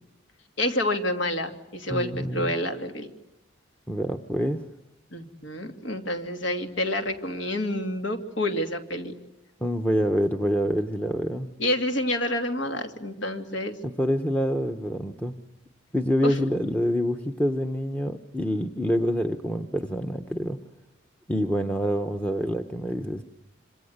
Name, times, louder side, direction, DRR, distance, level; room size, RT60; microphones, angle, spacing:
voice 1, 0.6-3.1 5.1-9.1 11.6-13.8 16.2-16.3, left 1 dB, 70° left, 5 dB, 2.8 m, -28 dB
voice 2, 1.9-2.5 3.9-4.6 9.6-11.5 13.8-15.4 15.9-20.6 21.3-23.2, equal, 5° left, 6 dB, 0.9 m, -26 dB
26.5 x 26.5 x 8.1 m, 0.91 s
head